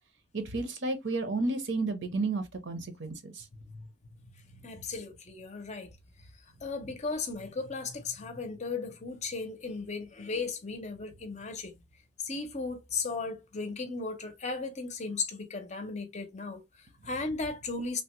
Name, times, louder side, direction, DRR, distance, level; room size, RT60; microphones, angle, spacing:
voice 1, 0.3-3.4, right 3 dB, 65° right, 0.8 m, -32 dB
voice 2, 4.6-5.9 6.6-11.7 12.2-18.0, left 4 dB, 35° left, 0.6 m, -36 dB
3.3 x 2.2 x 2.9 m
head